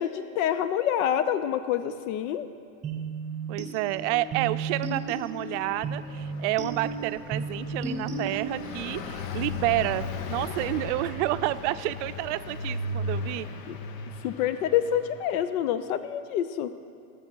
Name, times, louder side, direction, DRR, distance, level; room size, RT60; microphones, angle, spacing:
voice 1, 0.0-2.5 13.7-13.8 14.2-16.7, left 10 dB, 90° left, 12 dB, 0.6 m, -27 dB
sound 1, 2.8-8.8, right 4 dB, 15° right, 0.8 m, -34 dB
voice 2, 3.5-13.5, right 17 dB, 60° right, 14 dB, 0.5 m, -29 dB
Car passing by, 4.5-15.5, left 3 dB, 70° left, 1.0 m, -37 dB
20.5 x 6.9 x 4.6 m, 2.4 s
supercardioid pair, 155°, 41 cm